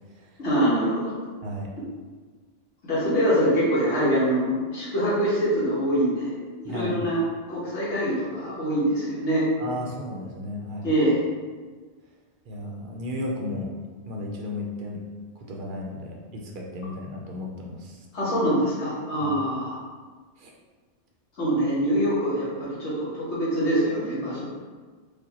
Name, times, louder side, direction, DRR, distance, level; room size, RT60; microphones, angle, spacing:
voice 1, 0.4-1.1 2.8-6.3 6.6-7.2 7.5-9.5 10.8-11.2 18.1-19.8 21.4-24.4, equal, 70° left, -8 dB, 1.4 m, -24 dB
voice 2, 6.6-7.0 9.6-10.9 12.5-13.7 14.0-15.1 15.4-18.0 19.2-19.3 20.4-20.5, left 1 dB, 55° right, -1 dB, 0.7 m, -34 dB
5.0 x 2.2 x 2.8 m, 1.5 s
omnidirectional pair, 1.2 m